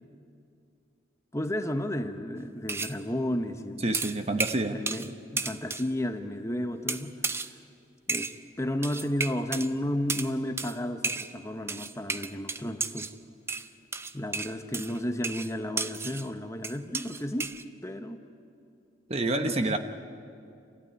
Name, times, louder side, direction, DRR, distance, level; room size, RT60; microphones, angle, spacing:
voice 1, 1.3-4.0 4.7-7.2 8.1-8.3 8.6-13.1 14.1-17.5 17.8-18.2 19.4-19.8, left 1 dB, 15° left, 7 dB, 0.9 m, -32 dB
sound 1, 2.7-3.0 3.9-5.1 5.4-5.9 6.9-7.5 8.1-8.4 8.8-9.7 10.1-10.3 10.6-10.8 11.0-11.3 11.7-13.1 13.5-16.3 16.6-17.6, right 4 dB, 15° right, 0.5 m, -33 dB
voice 2, 3.8-4.8 19.1-19.8, right 2 dB, 35° right, 8 dB, 0.9 m, -28 dB
28.5 x 14.5 x 9.5 m, 2.5 s
head